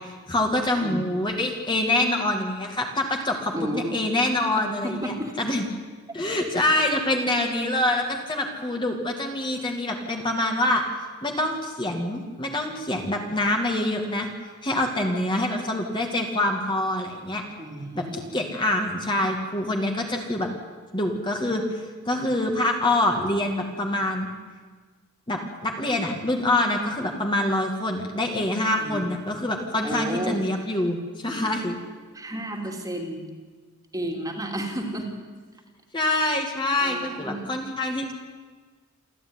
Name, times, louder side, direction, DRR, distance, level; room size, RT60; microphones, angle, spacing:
voice 1, 0.0-5.7 6.1-10.8 11.2-14.3 14.6-17.4 17.9-20.5 20.9-24.3 25.3-31.8 35.9-38.1, left 1 dB, 20° left, 2 dB, 2.4 m, -25 dB
voice 2, 0.8-1.3 3.5-4.0 4.6-5.4 17.6-18.4 28.8-29.1 29.8-30.4 32.1-33.3 33.9-35.1 36.2-36.4 36.8-37.5, right 1 dB, 15° right, 2 dB, 2.9 m, -32 dB
28.0 x 13.0 x 9.8 m, 1.4 s
head